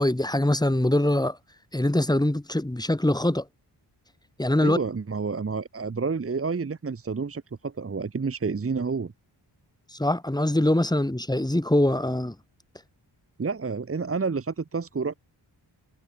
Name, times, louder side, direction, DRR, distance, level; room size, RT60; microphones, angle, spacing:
voice 1, 0.0-1.4 1.7-3.4 4.4-4.8 10.0-12.3, left 1 dB, 10° left, 3.5 m, -23 dB
voice 2, 4.6-9.1 13.4-15.1, right 4 dB, 30° right, 1.2 m, -29 dB
wide cardioid pair, 120°, 43 cm